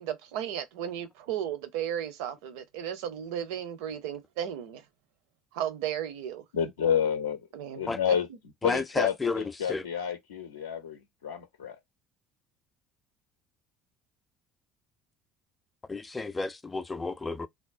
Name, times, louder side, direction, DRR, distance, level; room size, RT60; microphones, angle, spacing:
voice 1, 0.0-4.8 5.5-6.4 7.5-8.2, right 10 dB, 70° right, 0.6 m, -35 dB
voice 2, 6.5-7.4 7.8-8.3 8.6-11.8, left 8 dB, 80° left, 0.5 m, -29 dB
voice 3, 8.6-9.9 15.9-17.5, left 3 dB, 20° left, 0.5 m, -31 dB
3.6 x 2.1 x 2.4 m
figure-of-eight pair, 60°, 0 cm